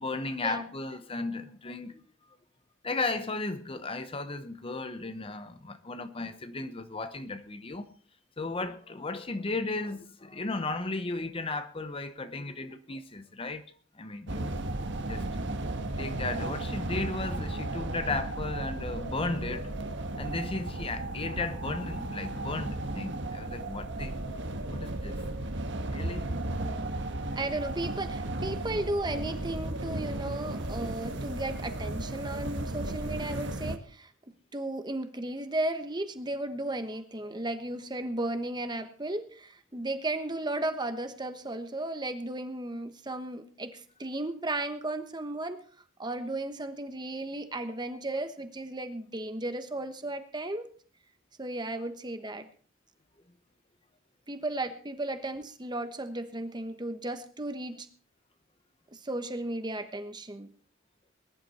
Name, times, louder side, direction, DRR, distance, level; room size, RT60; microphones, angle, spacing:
voice 1, 0.0-2.0 2.8-7.9 8.4-13.6 14.0-14.6 15.1-15.5 16.0-19.7 20.2-24.1 24.7-25.2 25.9-26.3, left 3 dB, 30° left, 0.8 m, -35 dB
sound 1, 14.3-33.8, right 1 dB, 60° right, 1.4 m, -35 dB
voice 2, 26.6-26.9 27.4-34.1 34.5-45.6 46.0-50.7 51.4-52.5 54.3-57.9 58.9-60.5, right 2 dB, 20° right, 1.2 m, -35 dB
20.5 x 11.0 x 4.3 m
head